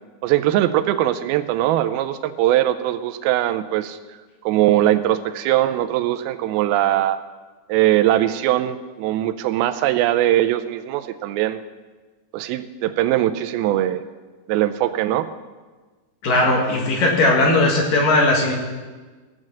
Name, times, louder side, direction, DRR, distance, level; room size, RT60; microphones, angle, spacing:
voice 1, 0.2-4.0 4.4-7.2 7.7-11.6 12.3-14.0 14.5-15.3, right 13 dB, 90° right, 11 dB, 2.5 m, -20 dB
voice 2, 16.2-18.5, left 2 dB, 65° left, -1 dB, 3.1 m, -18 dB
17.0 x 6.5 x 7.5 m, 1.3 s
omnidirectional pair, 4.3 m